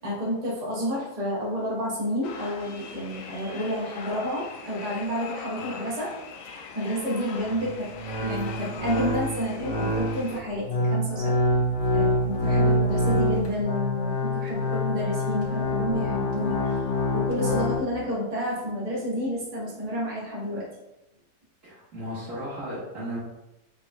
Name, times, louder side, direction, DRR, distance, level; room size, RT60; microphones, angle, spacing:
voice 1, 0.0-6.1 6.4-7.9 8.2-11.3 11.9-20.7, equal, 25° right, -6 dB, 1.3 m, -30 dB
sound 1, 2.2-10.4, left 5 dB, 70° left, 0.8 m, -41 dB
sound 2, 7.4-17.8, left 1 dB, 90° left, 1.6 m, -26 dB
voice 2, 21.6-23.2, equal, 50° right, -7 dB, 1.6 m, -35 dB
5.1 x 4.0 x 2.3 m, 0.92 s
omnidirectional pair, 1.8 m